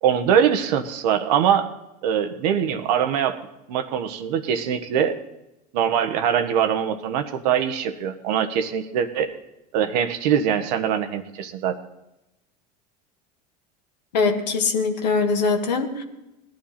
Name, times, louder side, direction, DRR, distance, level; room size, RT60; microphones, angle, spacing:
voice 1, 0.0-1.7 2.0-3.4 3.7-5.2 5.7-9.3 9.7-11.8, right 8 dB, 75° right, 7 dB, 1.3 m, -22 dB
voice 2, 14.1-16.0, left 4 dB, 90° left, 3 dB, 1.6 m, -22 dB
18.5 x 12.0 x 4.3 m, 0.93 s
hypercardioid pair, 85°, 21 cm